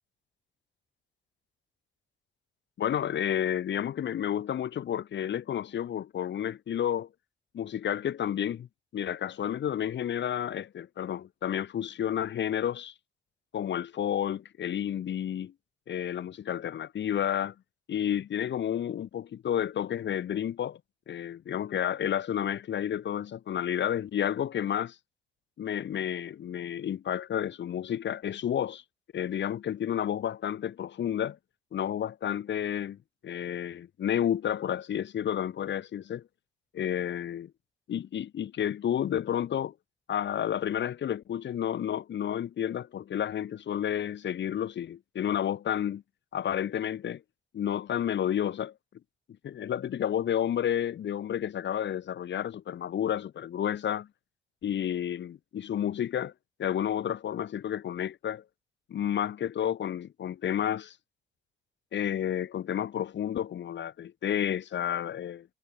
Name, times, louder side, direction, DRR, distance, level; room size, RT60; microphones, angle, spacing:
voice 1, 2.8-7.1 7.5-8.7 8.9-12.9 13.5-15.5 15.9-17.5 17.9-20.8 21.1-25.0 25.6-28.8 29.1-31.4 31.7-36.2 36.7-37.5 37.9-39.7 40.1-46.0 46.3-47.2 47.5-48.7 49.4-54.1 54.6-56.3 56.6-58.4 58.9-61.0 61.9-65.5, left 10 dB, 65° left, 5.9 m, -31 dB
cardioid pair, 90°, 20 cm